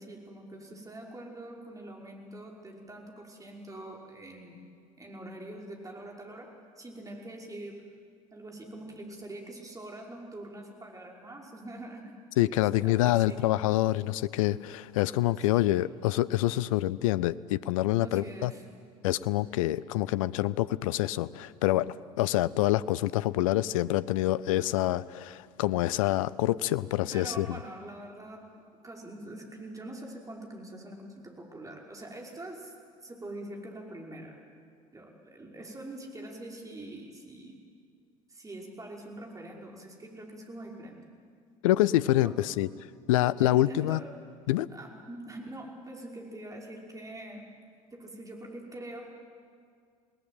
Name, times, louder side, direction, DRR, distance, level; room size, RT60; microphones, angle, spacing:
voice 1, 0.0-4.6 5.0-6.5 6.8-7.8 8.3-12.2 12.5-13.4 15.5-15.7 18.0-18.6 27.1-28.5 28.8-32.7 33.0-34.4 34.9-37.5 38.3-41.0 42.2-42.3 42.7-42.8 43.1-44.1 44.7-47.4 47.9-49.1, right 1 dB, 20° right, 0 dB, 5.6 m, -44 dB
voice 2, 12.4-18.5 19.0-27.6 41.6-42.7 43.1-44.0 44.5-44.7, left 15 dB, 65° left, 18 dB, 0.6 m, -26 dB
27.5 x 19.5 x 9.0 m, 2.2 s
figure-of-eight pair, 65°, 18 cm